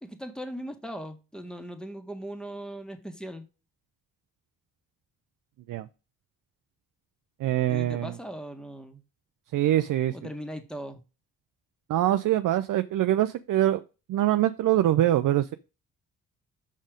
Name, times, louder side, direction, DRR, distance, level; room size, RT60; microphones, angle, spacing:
voice 1, 0.0-3.5 7.7-9.0 10.1-11.0, equal, ahead, 1.6 m, -39 dB
voice 2, 7.4-8.1 9.5-10.2 11.9-13.8 14.1-15.5, right 13 dB, 55° right, 0.6 m, -24 dB
6.4 x 5.4 x 5.1 m
hypercardioid pair, 45°, 38 cm